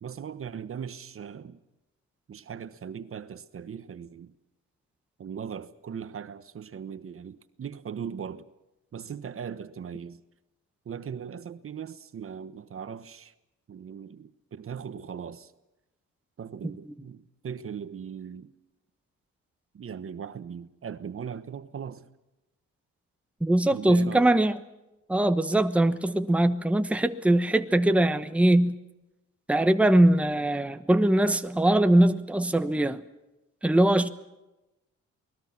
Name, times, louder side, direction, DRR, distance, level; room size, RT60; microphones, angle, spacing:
voice 1, 0.0-1.6 2.3-4.3 5.2-8.5 8.9-10.2 10.8-13.3 13.7-15.5 16.4-18.5 19.7-22.1 23.7-24.3, right 7 dB, 45° right, 1.2 m, -39 dB
voice 2, 23.4-24.6 25.1-28.8 29.5-33.0 33.6-34.1, right 1 dB, 5° right, 1.1 m, -22 dB
28.5 x 20.0 x 6.0 m
cardioid pair, 90°, 30 cm